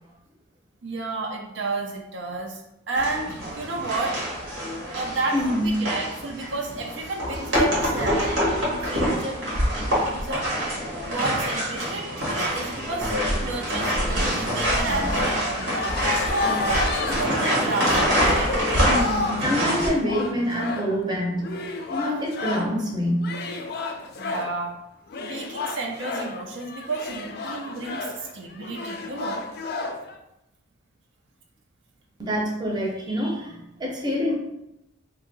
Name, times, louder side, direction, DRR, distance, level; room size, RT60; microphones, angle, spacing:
voice 1, 0.8-4.2 4.9-10.5 11.0-15.6 16.1-16.5 17.0-18.5 24.2-24.8 25.2-29.5, right 3 dB, 65° right, 1 dB, 0.4 m, -31 dB
sound 1, 3.0-19.9, equal, 85° right, 1.3 m, -25 dB
voice 2, 5.3-5.7 12.1-12.2 16.4-16.8 18.9-23.3 32.2-34.4, equal, 20° right, -2 dB, 0.6 m, -26 dB
sound 2, 14.9-22.8 23.2-24.6 25.1-30.1, left 3 dB, 50° left, 0.4 m, -31 dB
2.7 x 2.6 x 3.9 m, 0.87 s
head